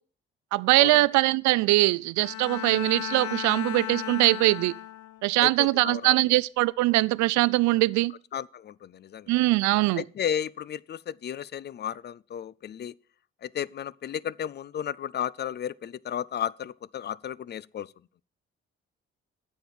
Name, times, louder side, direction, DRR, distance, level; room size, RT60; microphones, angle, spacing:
voice 1, 0.5-4.7 5.2-8.1 9.3-10.0, right 20 dB, 70° right, 0.5 m, -22 dB
Bowed string instrument, 2.2-5.4, left 12 dB, 70° left, 0.7 m, -35 dB
voice 2, 5.4-6.4 8.3-9.3 10.0-12.9 13.4-17.9, left 9 dB, 35° left, 0.4 m, -34 dB
9.0 x 7.2 x 7.3 m
hypercardioid pair, 45°, 30 cm